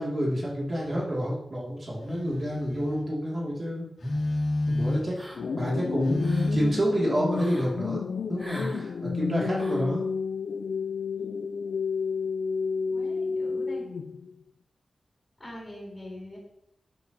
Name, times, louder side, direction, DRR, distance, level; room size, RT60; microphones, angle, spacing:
voice 1, 0.0-3.9 4.7-5.2 5.5-10.1, equal, 35° right, -4 dB, 2.4 m, -29 dB
Telephone, 0.8-1.1 2.0-3.1 4.0-5.2 6.0-6.7, left 1 dB, 60° left, 3.0 m, -29 dB
sound 1, 5.1-5.7 6.0-6.6 7.3-7.7 8.4-8.8 9.5-9.9, equal, 15° right, 2.2 m, -43 dB
sound 2, 5.3-14.3, left 5 dB, 75° left, 0.3 m, -31 dB
voice 2, 12.9-13.8 15.4-16.4, left 1 dB, 20° left, -3 dB, 3.9 m, -43 dB
12.5 x 8.0 x 2.8 m, 0.79 s
wide cardioid pair, 140°, 0 cm